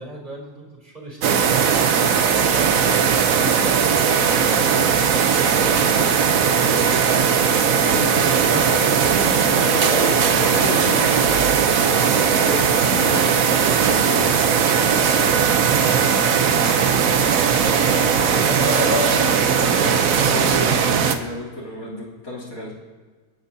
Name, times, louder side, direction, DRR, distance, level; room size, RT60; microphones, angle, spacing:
voice 1, 0.0-2.6 17.5-19.9, right 1 dB, 30° right, -3 dB, 3.8 m, -37 dB
sound 1, 1.2-21.2, right 7 dB, 65° right, 1.3 m, -18 dB
voice 2, 3.3-3.6 7.9-14.5 18.6-22.7, left 1 dB, 65° left, -4 dB, 4.0 m, -30 dB
28.5 x 9.9 x 2.8 m, 1.5 s
omnidirectional pair, 1.6 m